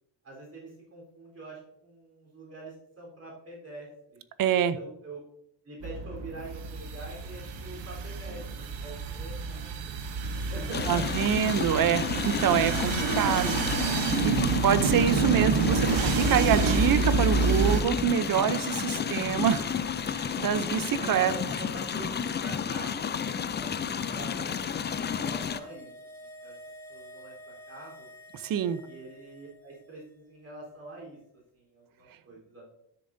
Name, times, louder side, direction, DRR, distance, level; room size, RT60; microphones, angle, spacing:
voice 1, 0.2-4.2 4.5-5.2 5.6-11.1 18.9-19.4 21.0-25.9 26.2-26.6 26.9-28.1 28.8-31.2 31.5-32.7, right 2 dB, 35° right, -3 dB, 3.8 m, -45 dB
voice 2, 4.4-4.8 10.9-13.9 14.2-14.3 14.6-21.3 28.3-28.8, right 9 dB, 55° right, 14 dB, 0.7 m, -26 dB
sound 1, 5.8-17.8, right 4 dB, 80° right, 1.0 m, -28 dB
sound 2, 10.7-25.6, left 7 dB, 25° left, 0.4 m, -31 dB
sound 3, 24.6-30.0 30.3-30.4, equal, 5° left, 1.8 m, -49 dB
12.5 x 6.9 x 2.7 m, 0.74 s
cardioid pair, 130°, 41 cm